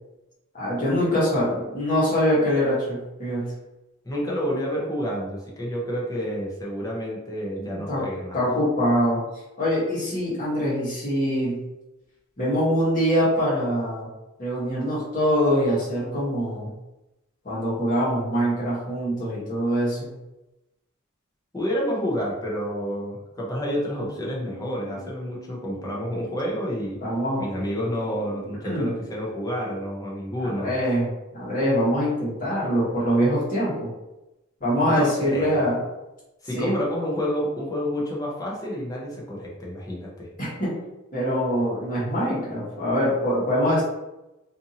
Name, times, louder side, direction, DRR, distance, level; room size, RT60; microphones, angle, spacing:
voice 1, 0.5-3.5 7.6-8.0 8.3-9.2 9.6-11.6 12.4-14.1 14.4-16.7 17.4-20.1 27.0-27.4 28.6-28.9 30.4-31.1 31.3-33.9 34.6-35.8 36.5-36.9 40.4-40.8 41.1-43.8, equal, 40° left, -8 dB, 1.2 m, -24 dB
voice 2, 4.0-8.4 21.5-27.0 27.4-30.7 34.8-35.7 36.4-40.3, equal, 15° left, -4 dB, 0.6 m, -29 dB
Keyboard (musical), 24.0-29.9, right 1 dB, 75° right, 0.7 m, -47 dB
2.6 x 2.6 x 2.7 m, 0.97 s
head